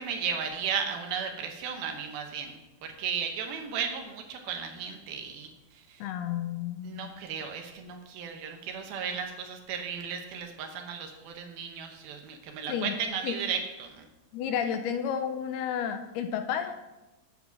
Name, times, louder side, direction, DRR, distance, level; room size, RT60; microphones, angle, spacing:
voice 1, 0.0-2.6 2.8-5.5 5.9-6.0 6.8-14.1, right 6 dB, 70° right, 4 dB, 2.7 m, -35 dB
voice 2, 6.0-7.2 12.7-12.9 13.2-13.3 14.3-16.8, left 8 dB, 80° left, 8 dB, 2.6 m, -31 dB
9.6 x 7.4 x 6.0 m, 1.0 s
omnidirectional pair, 4.8 m